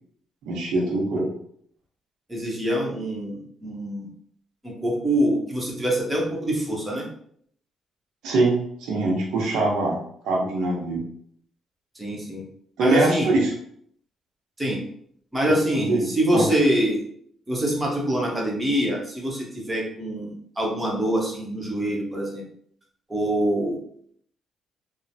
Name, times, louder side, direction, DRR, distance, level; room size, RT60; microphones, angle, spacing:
voice 1, 0.5-1.3 8.2-10.0 10.2-11.0 12.8-13.5 15.7-16.1 16.3-16.5, right 2 dB, 85° right, -2 dB, 0.7 m, -23 dB
voice 2, 2.3-4.1 4.6-7.1 12.0-12.4 12.8-13.3 14.6-14.8 15.3-17.0 17.5-22.4 23.1-23.8, right 1 dB, 15° right, -2 dB, 0.9 m, -25 dB
3.0 x 2.0 x 2.7 m, 0.65 s
cardioid pair, 90°, 0 cm